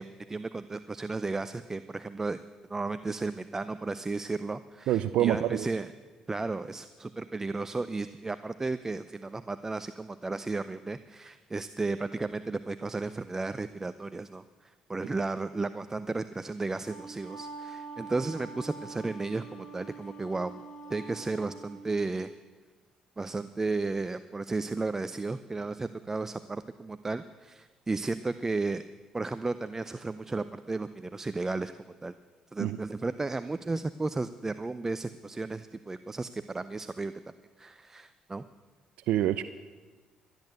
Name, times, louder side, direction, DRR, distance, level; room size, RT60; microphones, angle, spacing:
voice 1, 0.0-2.4 2.7-5.9 6.3-20.6 20.9-22.3 23.2-28.8 29.1-32.1 32.5-37.1 37.6-38.4, right 3 dB, 20° right, 12 dB, 0.5 m, -34 dB
voice 2, 4.9-5.7 32.6-32.8 39.1-39.4, right 12 dB, 80° right, 13 dB, 0.5 m, -26 dB
Wind instrument woodwind instrument, 16.6-22.0, right 4 dB, 40° left, 5.6 m, -45 dB
13.0 x 10.5 x 7.8 m, 1.3 s
supercardioid pair, 75°, 2 cm